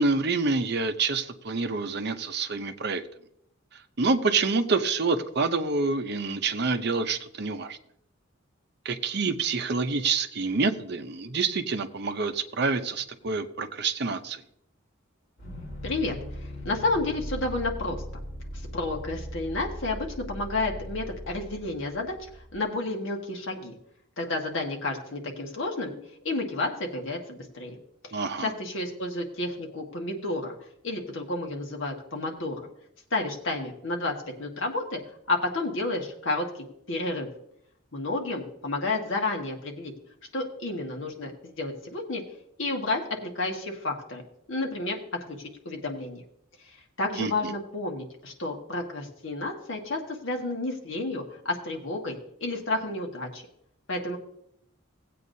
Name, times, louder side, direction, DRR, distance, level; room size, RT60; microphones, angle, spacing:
voice 1, 0.0-3.0 4.0-7.8 8.8-14.4 28.1-28.5 47.2-47.5, right 4 dB, 55° right, 9 dB, 0.7 m, -27 dB
sound 1, 15.4-22.6, equal, 45° left, 3.9 m, -39 dB
voice 2, 15.8-16.1 16.6-18.0 18.7-22.2 22.5-23.7 24.2-25.9 26.2-27.7 28.1-30.5 30.8-32.7 33.1-34.1 34.4-35.0 35.3-36.5 36.9-37.3 37.9-39.9 40.3-42.2 42.6-44.2 44.5-45.0 45.3-46.2 46.7-53.4 53.9-54.2, left 2 dB, 70° left, 1 dB, 1.6 m, -31 dB
17.5 x 8.4 x 2.7 m, 0.73 s
head